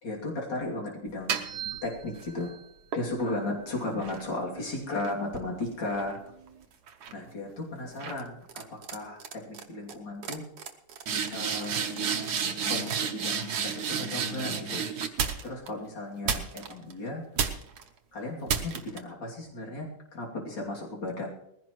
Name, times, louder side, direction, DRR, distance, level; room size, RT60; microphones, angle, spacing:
voice 1, 0.0-1.4 1.8-2.6 2.9-6.2 7.1-10.4 11.3-11.9 12.7-14.8 15.4-17.2 18.1-21.3, left 2 dB, 55° left, -2 dB, 3.5 m, -35 dB
sound 1, 1.1-2.3 2.9-6.5 6.9-7.3 8.0-8.2 8.5-8.9 9.2-9.6 9.9-10.0 10.2-15.7 16.3-16.9 17.4-17.8 18.5-19.0, right 6 dB, 55° right, 1.3 m, -32 dB
20.5 x 15.5 x 3.1 m, 0.80 s
omnidirectional pair, 2.4 m